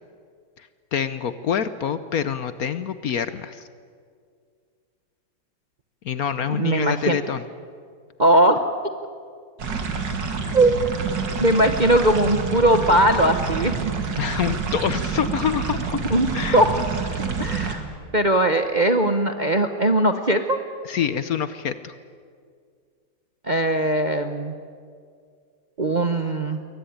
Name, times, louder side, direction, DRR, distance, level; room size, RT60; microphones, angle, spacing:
voice 1, 0.9-3.6 6.0-7.4 14.2-16.0 16.3-16.6 17.1-17.2 20.8-21.9, left 8 dB, 60° left, 13 dB, 1.1 m, -26 dB
voice 2, 6.5-7.2 8.2-8.6 10.5-10.7 11.4-13.7 16.1-16.7 17.4-17.8 18.1-20.6 23.4-24.5 25.8-26.6, right 1 dB, 35° right, 7 dB, 0.8 m, -19 dB
sound 1, 9.6-17.8, right 5 dB, 70° right, 2.7 m, -28 dB
22.5 x 18.5 x 10.0 m, 2.1 s
omnidirectional pair, 2.0 m